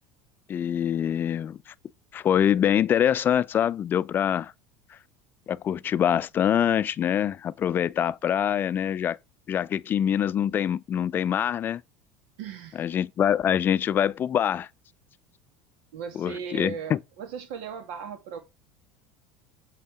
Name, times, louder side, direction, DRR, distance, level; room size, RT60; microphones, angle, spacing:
voice 1, 0.5-1.7 2.1-4.5 4.9-5.0 5.5-9.2 9.5-11.8 12.8-14.7 16.2-17.0, left 9 dB, 35° left, 0.4 m, -24 dB
voice 2, 12.4-12.8 15.9-18.4, right 7 dB, 75° right, 2.3 m, -37 dB
8.1 x 3.8 x 4.8 m
supercardioid pair, 95°, 6 cm